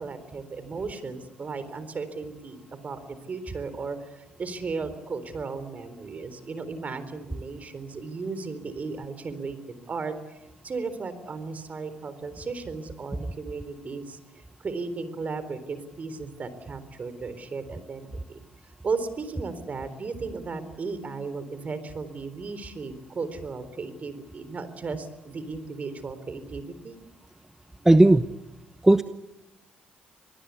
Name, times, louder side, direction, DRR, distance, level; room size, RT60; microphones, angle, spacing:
voice 1, 0.0-10.4 10.6-18.4 18.8-27.0, right 4 dB, 45° right, 12 dB, 4.0 m, -35 dB
voice 2, 27.8-28.2 28.8-29.0, right 2 dB, 10° right, 10 dB, 1.0 m, -15 dB
26.0 x 20.0 x 8.4 m, 0.98 s
supercardioid pair, 70°, 4 cm